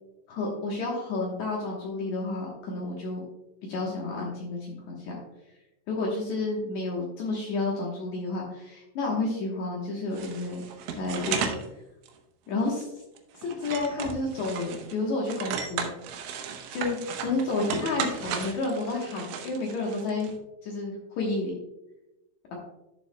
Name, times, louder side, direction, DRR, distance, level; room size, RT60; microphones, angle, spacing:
voice 1, 0.3-3.2 3.6-5.2 5.9-10.6 11.0-11.6 12.5-12.9 13.4-15.9 16.7-20.3 20.6-21.5, left 3 dB, 80° left, -3 dB, 1.6 m, -30 dB
sound 1, 10.1-11.7 12.0-12.1 12.7-12.8 13.2-15.0 15.3-20.3, right 7 dB, 85° right, 3.2 m, -35 dB
12.0 x 7.2 x 2.2 m, 0.96 s
omnidirectional pair, 5.2 m